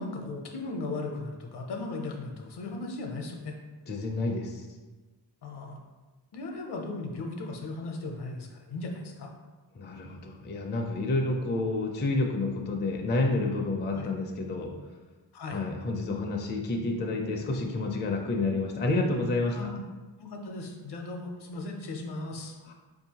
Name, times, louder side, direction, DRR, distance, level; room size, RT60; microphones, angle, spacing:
voice 1, 0.0-3.6 5.4-5.8 6.3-9.3 13.9-14.1 15.3-15.6 19.5-19.8 20.2-22.5, left 2 dB, 65° left, 2 dB, 0.7 m, -37 dB
voice 2, 3.9-4.7 9.7-14.8 15.5-19.6 22.6-22.7, left 2 dB, 25° left, 1 dB, 0.4 m, -29 dB
4.3 x 2.7 x 2.8 m, 1.2 s
cardioid pair, 100°, 44 cm